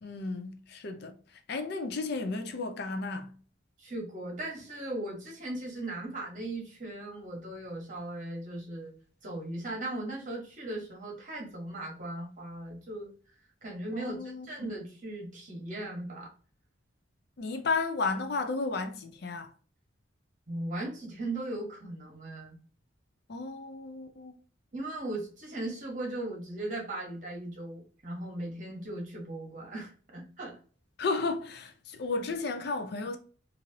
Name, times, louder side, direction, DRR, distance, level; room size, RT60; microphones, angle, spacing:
voice 1, 0.0-1.1 1.5-3.3 13.9-14.7 17.4-19.5 23.3-24.4 31.0-33.2, left 3 dB, 50° left, 0.4 m, -33 dB
voice 2, 3.8-8.9 9.2-13.1 13.6-14.2 14.4-16.3 20.5-22.6 24.7-30.6, right 1 dB, 40° right, 1.2 m, -38 dB
3.0 x 2.5 x 2.7 m
head